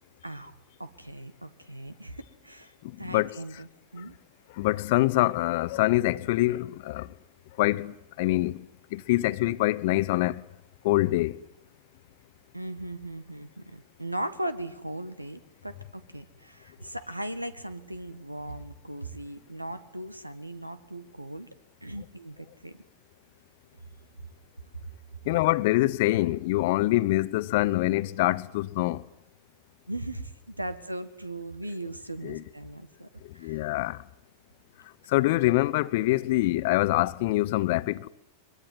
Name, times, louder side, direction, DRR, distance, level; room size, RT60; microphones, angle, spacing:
voice 1, 0.2-2.7 3.0-4.1 12.5-21.5 21.8-22.8 29.9-33.1 33.3-33.7, right 1 dB, 85° right, 1.6 m, -38 dB
voice 2, 2.8-3.3 4.6-7.1 7.6-10.4 10.8-11.4 25.3-29.0 32.2-32.4 33.4-34.0 35.1-38.1, left 18 dB, 50° left, 0.9 m, -25 dB
23.5 x 22.5 x 9.6 m
figure-of-eight pair, 90°, 0 cm